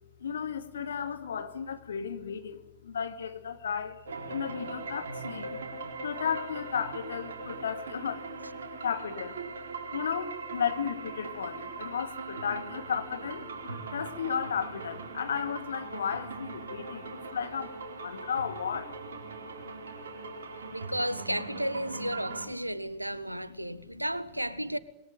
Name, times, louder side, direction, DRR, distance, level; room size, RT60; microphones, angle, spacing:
voice 1, 0.2-4.0 4.3-5.6 6.0-8.3 8.8-9.4 9.9-18.9 22.8-23.8, left 7 dB, 70° left, 2.4 m, -34 dB
sound 1, 4.1-22.5, right 3 dB, 65° right, 4.3 m, -40 dB
voice 2, 20.5-24.8, right 1 dB, 90° right, 1.4 m, -33 dB
27.0 x 22.0 x 8.9 m
figure-of-eight pair, 90°, 0 cm